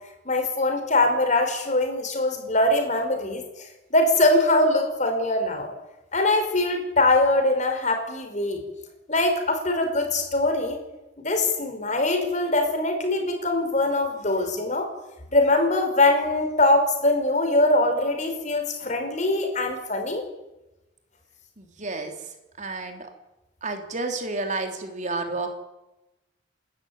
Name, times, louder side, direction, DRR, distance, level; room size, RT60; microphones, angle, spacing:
voice 1, 0.2-3.4 3.9-5.7 6.1-8.6 9.1-10.8 11.2-14.9 15.3-20.2, left 2 dB, 40° left, 5 dB, 5.1 m, -22 dB
voice 2, 21.6-22.1 22.6-23.1 23.6-25.5, right 3 dB, 40° right, 5 dB, 3.5 m, -30 dB
28.5 x 13.5 x 9.7 m, 1.0 s
head